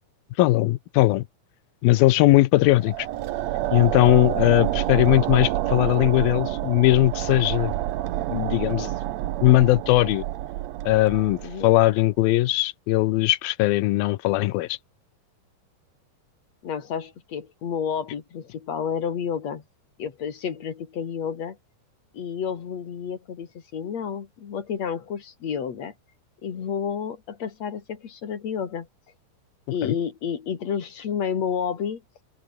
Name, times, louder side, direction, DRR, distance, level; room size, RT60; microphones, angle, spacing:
voice 1, 0.4-1.3 1.8-2.9 3.7-7.7 8.3-8.9 9.4-10.2 10.9-14.8 29.8-30.0, left 17 dB, 85° left, 2.6 m, -19 dB
sound 1, 2.6-11.9, right 14 dB, 80° right, 1.5 m, -28 dB
voice 2, 4.4-4.7 11.4-11.7 16.6-19.6 20.0-21.6 22.1-25.9 26.4-28.9 29.7-32.0, left 7 dB, 50° left, 3.2 m, -30 dB
open air
omnidirectional pair, 4.3 m